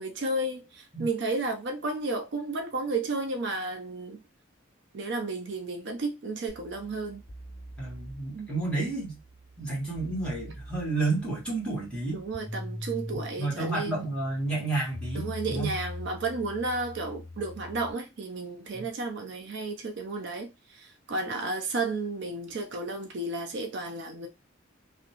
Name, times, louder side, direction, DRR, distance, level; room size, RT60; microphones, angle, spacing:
voice 1, 0.0-4.2 4.9-7.2 8.3-8.5 12.1-14.1 15.1-24.3, right 3 dB, 55° right, 0.4 m, -32 dB
sound 1, 6.5-17.9, left 1 dB, 30° right, 1.0 m, -43 dB
voice 2, 7.8-9.2 9.6-12.2 13.4-15.7 18.7-18.8, right 3 dB, 5° left, 1.2 m, -31 dB
2.6 x 2.2 x 2.8 m
head